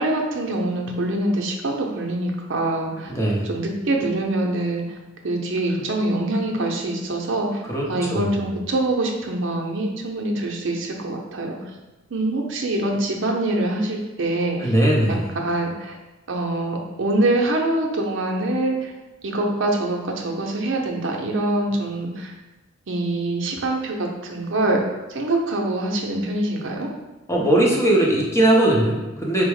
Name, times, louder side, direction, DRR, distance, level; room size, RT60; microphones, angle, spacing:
voice 1, 0.0-3.1 3.4-4.8 5.2-7.6 7.9-11.6 12.1-14.7 15.1-16.0 16.3-18.9 19.2-22.3 22.9-24.8 25.1-26.9, right 2 dB, 70° right, 0 dB, 0.6 m, -24 dB
voice 2, 3.1-3.5 7.7-8.3 14.6-15.4 27.3-29.5, right 1 dB, 15° left, -3 dB, 0.7 m, -19 dB
4.6 x 2.1 x 4.7 m, 1.1 s
head